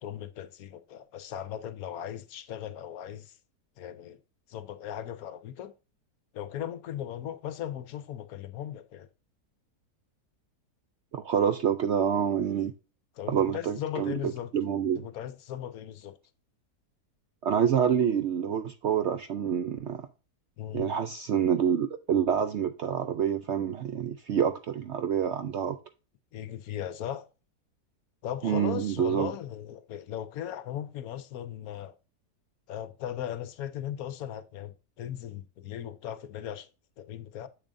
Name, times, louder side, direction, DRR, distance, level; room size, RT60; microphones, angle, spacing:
voice 1, 0.0-3.4 3.8-4.2 4.5-5.7 6.3-9.1 13.2-14.5 15.0-16.2 20.6-20.9 26.3-27.3 28.2-32.0 32.7-36.7 37.0-37.5, left 10 dB, 70° left, 1.1 m, -38 dB
voice 2, 11.1-12.7 13.3-14.2 14.5-15.1 17.4-20.1 20.7-25.8 28.4-29.3, right 8 dB, 70° right, 0.6 m, -27 dB
7.6 x 7.0 x 2.6 m
omnidirectional pair, 1.7 m